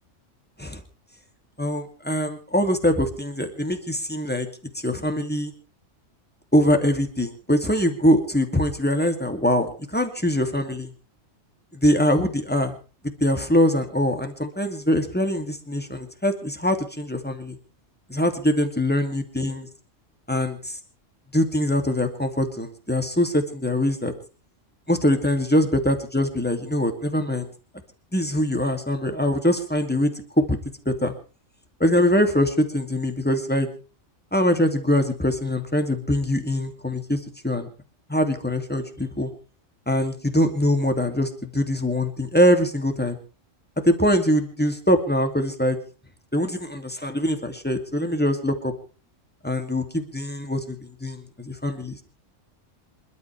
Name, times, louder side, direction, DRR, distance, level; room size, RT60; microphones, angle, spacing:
voice 1, 1.6-4.5 4.8-5.5 6.5-10.9 11.7-12.8 13.2-17.6 18.1-19.7 20.3-20.8 21.3-24.1 24.9-27.5 28.1-30.6 30.9-31.1 31.8-33.7 34.3-37.7 38.1-39.3 39.9-43.2 43.8-45.8 46.3-48.7 49.4-52.0, left 1 dB, 5° left, 6 dB, 2.5 m, -23 dB
27.5 x 12.5 x 3.4 m, 0.36 s
omnidirectional pair, 1.3 m